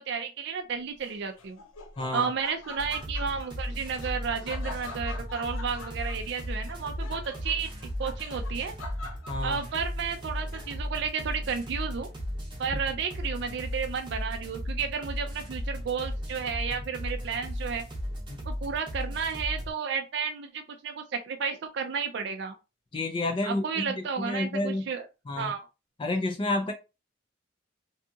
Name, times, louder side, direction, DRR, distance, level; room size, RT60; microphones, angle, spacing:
voice 1, 0.0-1.6 2.1-7.7 8.0-8.7 9.4-12.1 12.6-17.8 18.5-22.5 23.4-25.0 25.4-25.6, right 6 dB, 55° right, 0.3 m, -32 dB
Laughter, 1.0-11.0, left 3 dB, 90° left, 0.5 m, -45 dB
voice 2, 2.0-2.3 9.3-9.6 18.3-18.4 22.9-24.9 25.3-25.5 26.0-26.7, left 2 dB, 25° left, 0.4 m, -30 dB
sound 1, 2.8-19.7, equal, 25° right, 0.7 m, -36 dB
2.7 x 2.3 x 2.6 m
head